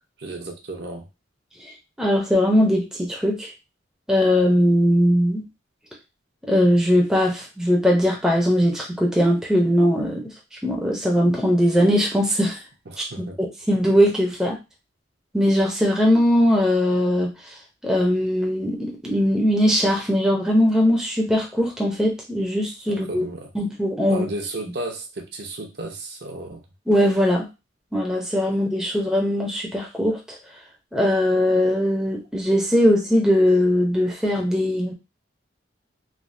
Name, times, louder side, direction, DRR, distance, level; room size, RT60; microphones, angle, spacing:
voice 1, 0.2-1.1 12.9-13.4 22.9-23.5 24.1-26.6, right 2 dB, 55° right, 2 dB, 0.6 m, -33 dB
voice 2, 2.0-3.5 4.1-5.4 6.5-10.2 10.6-12.6 13.0-14.6 15.3-17.3 17.8-23.3 23.5-24.3 26.9-27.5 27.9-30.4 30.9-34.9, equal, 5° right, -1 dB, 0.5 m, -20 dB
3.2 x 2.1 x 2.6 m, 0.25 s
head